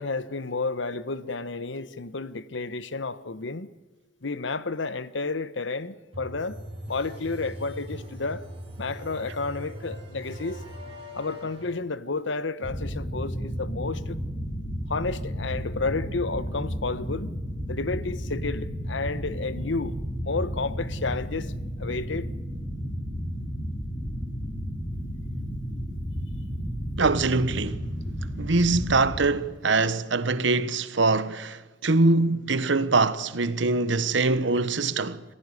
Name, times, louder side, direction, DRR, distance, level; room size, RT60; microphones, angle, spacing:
voice 1, 0.0-3.7 4.2-6.6 6.9-8.4 8.8-10.6 11.1-14.2 14.9-17.3 17.7-19.9 20.2-21.5 21.8-22.3, left 3 dB, 80° left, 1.1 m, -31 dB
sound 1, 6.1-11.7, equal, 30° right, 6.2 m, -40 dB
sound 2, 12.6-29.3, equal, 25° left, 3.6 m, -33 dB
voice 2, 27.0-27.9 28.4-35.2, right 3 dB, 75° right, 1.1 m, -23 dB
26.5 x 15.5 x 9.8 m
head